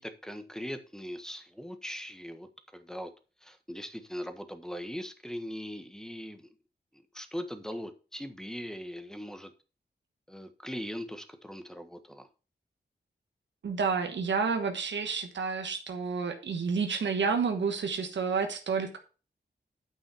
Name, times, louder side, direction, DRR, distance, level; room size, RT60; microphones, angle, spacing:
voice 1, 0.0-3.1 3.4-6.5 7.1-9.5 10.3-12.3, equal, 5° left, 9 dB, 1.4 m, -40 dB
voice 2, 13.6-19.0, right 5 dB, 85° right, 5 dB, 1.3 m, -30 dB
9.1 x 5.5 x 4.9 m, 0.35 s
cardioid pair, 70°, 18 cm